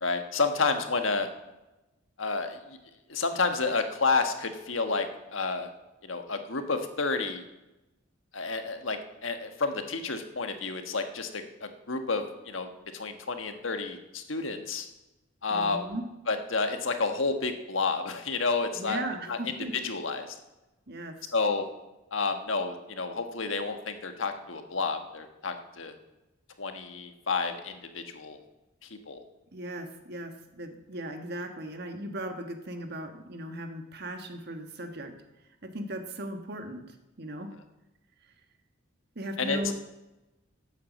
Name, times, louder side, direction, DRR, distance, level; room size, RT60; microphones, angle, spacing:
voice 1, 0.0-1.3 2.2-2.8 3.1-5.7 6.0-7.4 8.3-14.9 15.4-15.9 16.3-19.0 19.3-19.6 19.8-20.3 21.3-21.6 22.1-25.9 26.6-28.4 29.1-29.2 39.4-39.7, left 4 dB, 80° left, 6 dB, 1.4 m, -30 dB
voice 2, 15.5-16.0 18.7-19.7 20.9-21.1 29.5-35.1 35.6-37.5 39.1-39.7, right 1 dB, 55° right, 6 dB, 1.5 m, -37 dB
12.5 x 8.4 x 7.4 m, 1.0 s
head